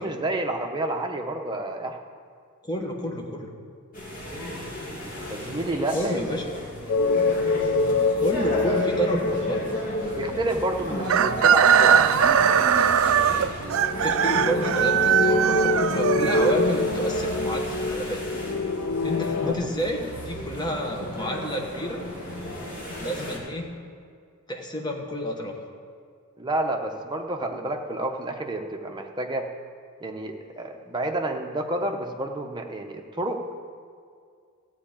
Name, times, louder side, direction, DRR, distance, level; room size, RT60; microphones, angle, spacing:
voice 1, 0.0-2.0 5.3-6.2 10.2-12.0 19.4-19.6 26.4-29.5 30.0-33.4, right 1 dB, 20° right, 3 dB, 0.8 m, -29 dB
voice 2, 2.6-3.6 5.9-6.4 8.2-9.6 13.2-13.6 14.0-18.2 19.0-22.0 23.0-23.8 24.5-25.5, equal, 20° left, 1 dB, 1.2 m, -30 dB
sound 1, 3.9-23.4, equal, 40° left, 2.3 m, -35 dB
sound 2, 6.9-12.0 13.7-19.5, left 3 dB, 65° left, 0.5 m, -26 dB
Chicken rooster, 11.0-17.0, right 8 dB, 60° right, 0.4 m, -20 dB
14.0 x 4.8 x 8.9 m, 2.2 s
head